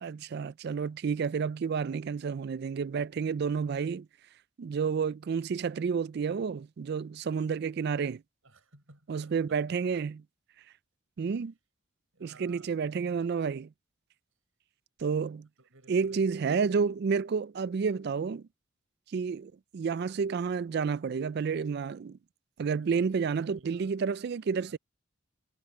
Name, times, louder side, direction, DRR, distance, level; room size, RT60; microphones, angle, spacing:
voice 1, 0.0-4.1 4.6-8.2 9.1-10.1 11.2-11.5 12.2-13.7 15.0-15.5 15.9-18.4 19.1-22.2 22.6-24.8, right 5 dB, 50° right, 0.3 m, -30 dB
voice 2, 8.4-10.1 12.1-12.9 15.6-16.9 22.8-24.0 24.5-24.8, right 2 dB, 90° right, 5.9 m, -58 dB
head